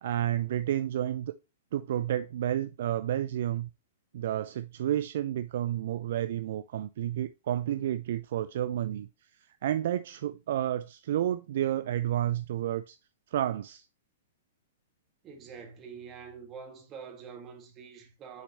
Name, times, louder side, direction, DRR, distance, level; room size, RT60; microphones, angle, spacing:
voice 1, 0.0-1.3 1.7-3.7 4.1-9.1 9.6-13.0 13.3-13.8, right 11 dB, 60° right, 0.3 m, -30 dB
voice 2, 15.2-18.4, right 6 dB, 30° right, 1.8 m, -46 dB
6.4 x 5.1 x 3.0 m
hypercardioid pair, 115°, 0 cm